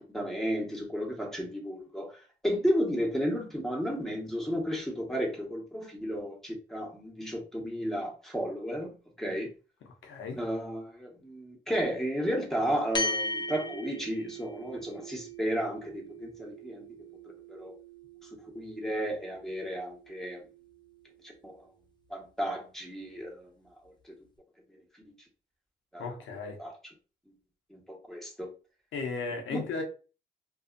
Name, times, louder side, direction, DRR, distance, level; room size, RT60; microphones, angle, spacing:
voice 1, 0.0-9.5 10.4-16.9 17.5-17.7 18.2-18.3 18.5-20.4 21.2-21.6 22.1-23.7 24.0-24.1 25.0-25.1 25.9-26.1 26.6-26.7 27.7-28.5 29.5-29.6, equal, ahead, 1.1 m, -33 dB
voice 2, 10.0-10.4 26.0-26.6 28.9-29.8, left 4 dB, 90° left, 0.7 m, -35 dB
sound 1, 12.9-21.6, left 1 dB, 25° left, 0.6 m, -39 dB
2.6 x 2.4 x 2.5 m
cardioid pair, 55°, 20 cm